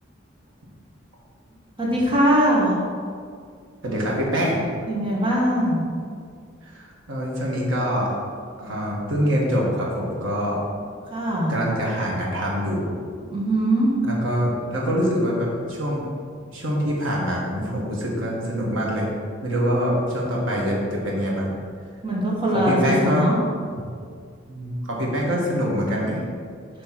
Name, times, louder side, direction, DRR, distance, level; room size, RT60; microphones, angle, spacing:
voice 1, 1.8-2.8 4.9-5.8 11.1-11.5 13.3-13.9 22.0-23.3, equal, 25° right, -4 dB, 1.4 m, -21 dB
voice 2, 3.8-4.6 6.6-8.2 8.6-10.6 11.5-12.9 14.0-16.0 16.5-19.1 19.4-21.5 22.5-23.3 23.7-23.8 24.5-26.2, equal, 80° right, -3 dB, 1.6 m, -24 dB
6.8 x 3.3 x 5.8 m, 2.1 s
head